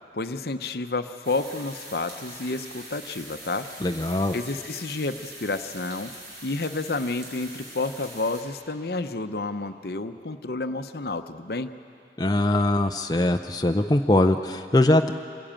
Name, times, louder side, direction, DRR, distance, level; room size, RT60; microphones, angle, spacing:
voice 1, 0.1-3.7 4.3-6.1 6.4-11.7, left 3 dB, 60° left, 9 dB, 0.8 m, -30 dB
sound 1, 1.2-8.4, right 1 dB, 65° right, 5.9 m, -43 dB
voice 2, 3.8-4.4 12.2-15.1, left 1 dB, 20° left, 5 dB, 0.5 m, -21 dB
26.5 x 17.0 x 8.9 m, 2.6 s
head